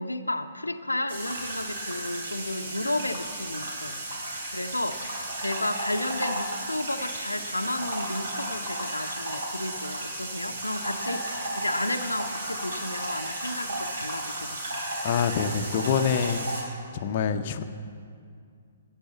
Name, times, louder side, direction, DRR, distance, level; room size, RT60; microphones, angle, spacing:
voice 1, 0.0-4.0 4.5-5.0 5.4-14.8 15.6-16.0, left 1 dB, 80° left, 7 dB, 0.6 m, -32 dB
sound 1, 1.1-16.6, right 1 dB, 60° right, 2.8 m, -34 dB
voice 2, 15.0-16.5 17.0-17.6, left 7 dB, 40° left, 6 dB, 0.6 m, -25 dB
13.0 x 8.9 x 7.3 m, 2.3 s
figure-of-eight pair, 125°, 0 cm